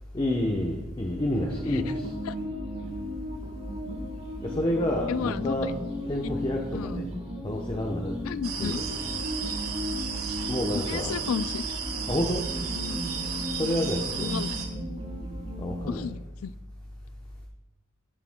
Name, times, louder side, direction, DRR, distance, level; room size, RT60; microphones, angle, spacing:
voice 1, 0.1-2.1 4.4-5.7 6.1-7.1 7.4-8.2 8.6-8.9 10.5-11.1 12.1-12.4 13.6-14.4 15.6-16.1, left 1 dB, 25° left, 0 dB, 0.8 m, -29 dB
sound 1, 1.1-15.9, equal, 30° right, 4.0 m, -35 dB
voice 2, 5.1-5.7 6.2-6.3 6.7-7.0 8.2-8.8 10.7-11.6 14.2-14.6 15.9-16.5, left 7 dB, 70° left, 16 dB, 0.4 m, -33 dB
sound 2, 8.4-14.7, right 7 dB, 80° right, 1.8 m, -34 dB
16.0 x 9.7 x 2.2 m, 0.96 s
head